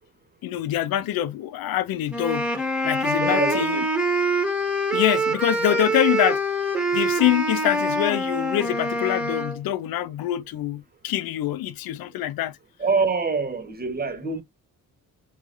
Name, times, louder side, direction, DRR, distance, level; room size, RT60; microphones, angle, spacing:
voice 1, 0.4-3.8 4.9-6.4 6.9-12.6, left 13 dB, 85° left, 0.6 m, -25 dB
sound 1, 2.1-9.6, right 1 dB, 5° right, 1.1 m, -25 dB
voice 2, 3.2-3.9 5.7-5.8 12.8-14.4, right 4 dB, 25° right, 1.2 m, -25 dB
4.8 x 3.7 x 2.5 m
cardioid pair, 120°, 35 cm